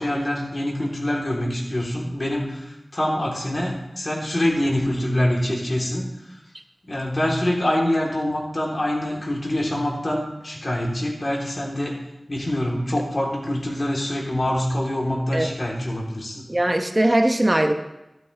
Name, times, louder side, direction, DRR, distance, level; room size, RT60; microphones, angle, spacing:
voice 1, 0.0-6.1 6.8-12.0 12.3-16.5, left 1 dB, 50° left, -3 dB, 3.8 m, -25 dB
voice 2, 16.5-17.7, right 1 dB, 30° right, 5 dB, 1.2 m, -20 dB
13.0 x 12.5 x 3.5 m, 0.95 s
wide cardioid pair, 45°, 0 cm